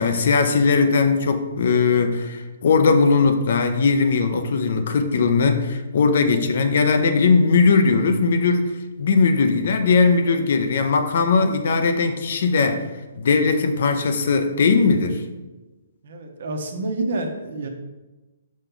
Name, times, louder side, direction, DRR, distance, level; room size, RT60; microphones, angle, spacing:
voice 1, 0.0-8.7 9.0-12.9 13.1-15.2, left 4 dB, 60° left, 7 dB, 0.7 m, -19 dB
voice 2, 16.0-17.7, right 2 dB, 65° right, 3 dB, 1.1 m, -28 dB
5.5 x 5.2 x 3.9 m, 1.1 s
hypercardioid pair, 140°, 0 cm